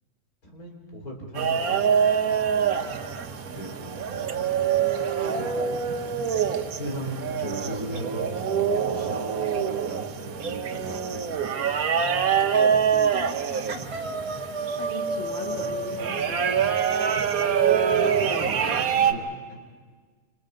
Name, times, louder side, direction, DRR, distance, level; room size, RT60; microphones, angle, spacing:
voice 1, 0.4-3.1 3.3-4.4 5.4-5.5 6.8-11.4 11.8-12.1 18.2-19.7, equal, 85° left, 0 dB, 4.3 m, -39 dB
sound 1, 1.4-19.1, right 7 dB, 75° right, 1.5 m, -25 dB
voice 2, 6.5-6.8 7.3-7.6 12.6-14.0 14.8-16.9 18.2-19.1, left 2 dB, 55° left, -2 dB, 3.2 m, -40 dB
sound 2, 12.5-12.8 13.1-13.4 13.7-17.8, right 2 dB, 45° right, 2.0 m, -34 dB
29.0 x 27.5 x 5.2 m, 1.5 s
omnidirectional pair, 1.5 m